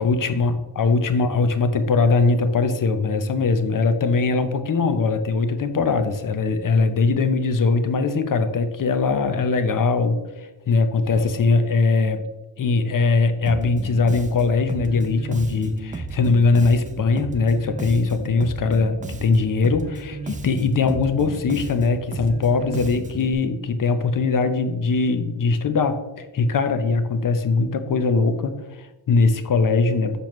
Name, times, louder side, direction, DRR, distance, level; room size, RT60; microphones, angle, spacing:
voice 1, 0.0-10.2 10.7-12.3 12.6-30.2, left 4 dB, 45° left, 9 dB, 0.6 m, -21 dB
Bass guitar, 13.5-23.3, right 2 dB, 20° right, 0.5 m, -34 dB
6.8 x 5.9 x 3.0 m, 1.1 s
wide cardioid pair, 145°, 44 cm